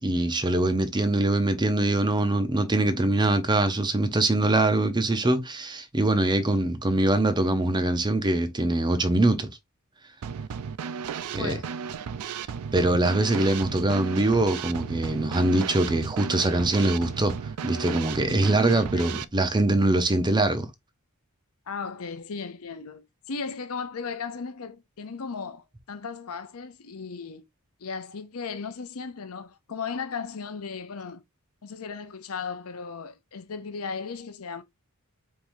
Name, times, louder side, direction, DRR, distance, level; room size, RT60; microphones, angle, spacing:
voice 1, 0.0-9.5 11.3-11.6 12.3-12.4 12.7-17.3 17.6-20.7, right 2 dB, 20° right, 0.7 m, -23 dB
Drum kit / Snare drum, 10.2-19.3, right 7 dB, 80° right, 0.4 m, -34 dB
voice 2, 18.9-19.2 21.7-27.4 27.8-31.2 31.6-34.6, left 5 dB, 70° left, 0.7 m, -36 dB
4.6 x 3.6 x 2.6 m
head